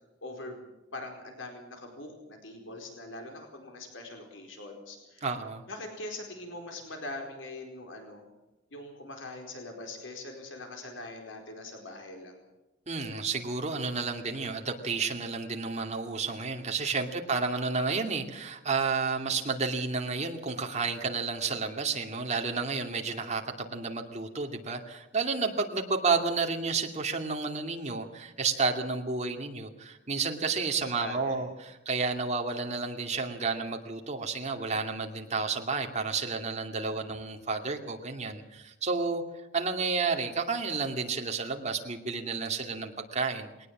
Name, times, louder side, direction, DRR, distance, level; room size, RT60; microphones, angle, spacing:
voice 1, 0.2-5.3 5.7-8.2 8.7-12.4 17.1-17.4 22.8-22.9 30.8-31.4 36.9-37.2, left 2 dB, 80° left, 3 dB, 4.6 m, -42 dB
voice 2, 5.2-5.6 12.9-39.2 39.5-43.5, right 4 dB, 35° right, 3 dB, 2.6 m, -31 dB
21.0 x 19.0 x 7.4 m, 0.98 s
head